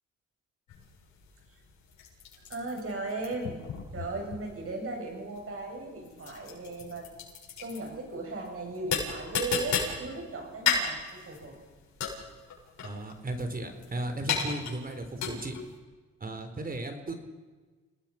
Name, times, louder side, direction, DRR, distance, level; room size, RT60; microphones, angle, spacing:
sound 1, 0.7-15.7, left 6 dB, 70° left, 7.6 m, -35 dB
voice 1, 2.5-3.6 3.9-7.1 7.6-11.6, right 2 dB, 50° right, 2 dB, 7.9 m, -37 dB
voice 2, 12.8-15.5 16.2-17.1, right 1 dB, 30° right, 7 dB, 4.0 m, -35 dB
29.0 x 19.0 x 5.9 m, 1.3 s
cardioid pair, 90°, 30 cm